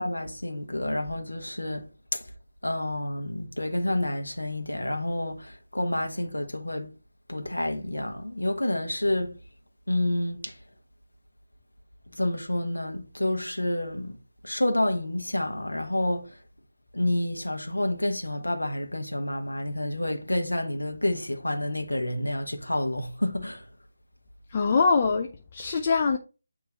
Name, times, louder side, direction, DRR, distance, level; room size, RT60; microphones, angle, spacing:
voice 1, 0.0-2.2 2.6-6.9 7.3-9.4 9.9-10.6 12.2-14.2 14.4-16.4 16.9-23.7, left 1 dB, 75° left, 1.3 m, -29 dB
voice 2, 24.5-26.2, left 4 dB, 30° left, 0.5 m, -23 dB
8.8 x 3.1 x 4.0 m
figure-of-eight pair, 155°, 0 cm